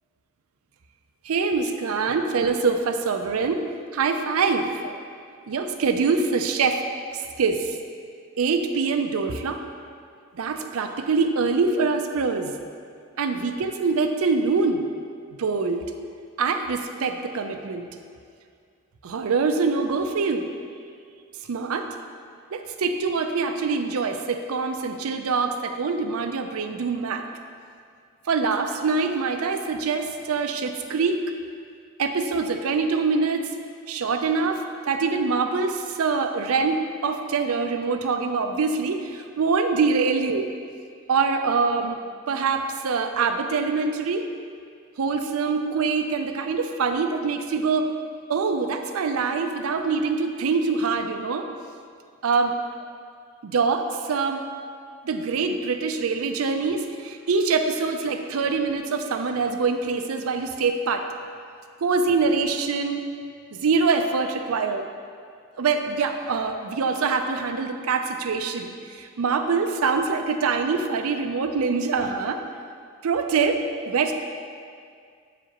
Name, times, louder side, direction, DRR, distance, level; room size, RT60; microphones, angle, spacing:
voice 1, 1.2-3.6 3.9-4.9 5.5-6.8 7.1-7.8 8.4-9.6 10.3-12.5 13.2-14.8 15.4-15.9 16.4-17.9 19.0-20.5 21.5-21.9 22.5-27.2 28.3-31.2 32.0-33.5 33.9-40.5 41.1-42.0 42.3-44.2 45.0-47.9 48.3-51.5 52.2-52.5 53.4-54.4 55.0-61.1 61.8-63.0 63.5-64.9 65.6-68.7 69.0-72.4 73.0-73.6 73.9-74.1, right 4 dB, 80° right, 6 dB, 0.5 m, -24 dB
7.6 x 5.0 x 2.9 m, 2.2 s
head